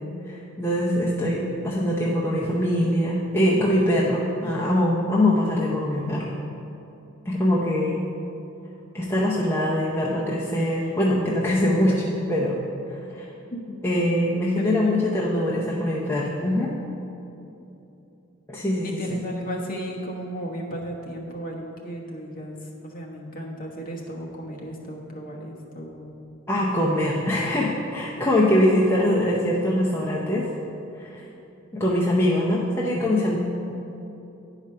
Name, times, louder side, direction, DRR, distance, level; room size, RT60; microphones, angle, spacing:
voice 1, 0.2-6.4 7.3-8.0 8.9-12.6 12.9-13.3 13.8-16.7 18.5-19.2 26.5-30.5 31.0-31.2 31.7-33.4, left 1 dB, 10° left, -5 dB, 0.6 m, -23 dB
voice 2, 14.6-15.0 18.8-26.2, equal, 40° left, -2 dB, 1.1 m, -35 dB
9.5 x 4.9 x 5.5 m, 2.9 s
head